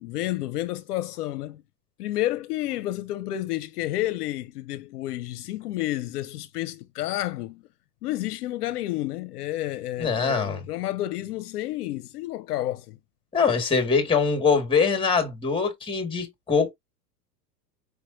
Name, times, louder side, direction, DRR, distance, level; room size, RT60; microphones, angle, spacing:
voice 1, 0.0-1.6 2.0-7.6 8.0-13.0, left 15 dB, 65° left, 0.7 m, -30 dB
voice 2, 10.0-10.6 13.3-16.7, left 5 dB, 10° left, 1.7 m, -23 dB
4.9 x 3.0 x 2.5 m
hypercardioid pair, 110°, 50 cm